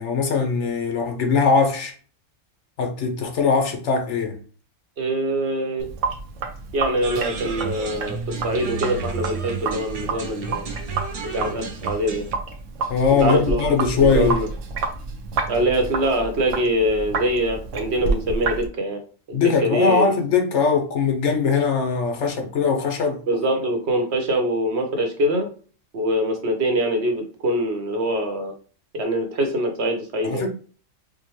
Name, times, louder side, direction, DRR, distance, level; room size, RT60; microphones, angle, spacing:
voice 1, 0.0-1.9 2.8-4.4 12.9-14.4 19.3-23.2 30.2-30.5, left 5 dB, 70° left, 1.1 m, -21 dB
voice 2, 5.0-5.9 6.7-10.6 11.2-12.2 13.2-14.5 15.5-19.0 19.3-20.1 23.3-25.5 25.9-28.5 28.9-30.5, right 1 dB, 65° right, 1.1 m, -24 dB
Sink (filling or washing), 5.8-18.7, right 4 dB, 85° right, 1.0 m, -29 dB
sound 1, 7.0-12.3, right 5 dB, 45° right, 0.5 m, -33 dB
4.9 x 2.1 x 3.0 m
omnidirectional pair, 1.3 m